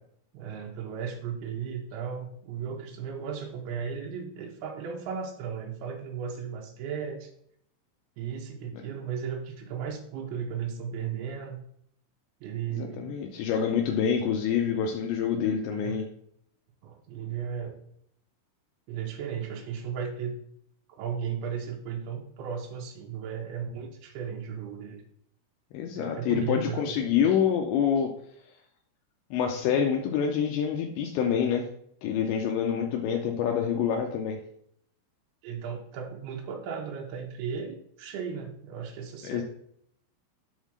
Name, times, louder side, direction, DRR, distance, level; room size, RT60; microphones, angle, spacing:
voice 1, 0.3-7.3 8.2-11.6 12.4-13.2 15.6-16.0 16.8-17.8 18.9-20.4 20.9-25.0 25.9-27.0 35.4-39.4, right 7 dB, 85° right, 0 dB, 2.2 m, -35 dB
voice 2, 12.8-16.1 25.7-28.1 29.3-31.7 32.0-34.4 39.2-39.4, left 8 dB, 85° left, 2 dB, 2.6 m, -26 dB
7.2 x 3.6 x 6.2 m, 0.68 s
omnidirectional pair, 5.8 m